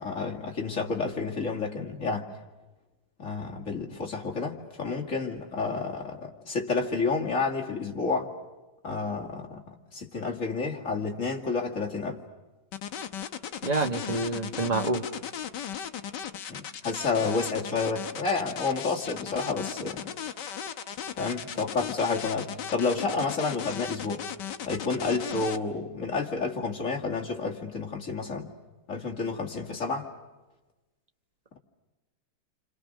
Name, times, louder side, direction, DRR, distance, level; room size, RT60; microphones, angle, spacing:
voice 1, 0.0-2.3 3.2-8.3 8.8-12.2 16.5-20.1 21.2-24.2 24.6-28.5 28.9-30.1, left 4 dB, 35° left, 0 dB, 2.5 m, -30 dB
sound 1, 12.7-25.6, left 8 dB, 60° left, 1.6 m, -36 dB
voice 2, 13.6-15.0, right 2 dB, 20° right, 5 dB, 1.3 m, -27 dB
29.5 x 26.5 x 6.4 m, 1.1 s
omnidirectional pair, 2.3 m